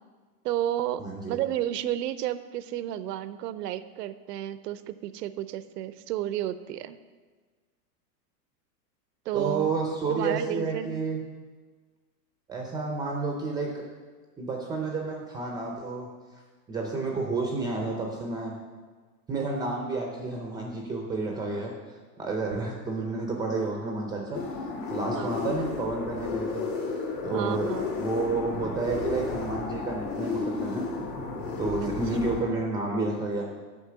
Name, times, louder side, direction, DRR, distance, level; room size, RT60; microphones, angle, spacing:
voice 1, 0.4-1.0 1.3-7.0 9.3-9.7 10.1-11.0 17.1-17.3 25.1-25.6 27.3-27.9 31.8-31.9 32.3-32.4, right 12 dB, 75° right, 13 dB, 0.7 m, -32 dB
voice 2, 1.0-1.4 9.3-11.2 12.5-13.8 14.4-16.1 16.7-18.6 19.3-21.7 22.2-24.4 24.9-26.6 27.2-27.7 28.0-30.8 31.6-33.5, right 3 dB, 10° right, 1 dB, 0.4 m, -30 dB
sound 1, 24.3-32.4, left 4 dB, 80° left, 3.0 m, -33 dB
8.4 x 5.6 x 6.8 m, 1.4 s
hypercardioid pair, 140°, 48 cm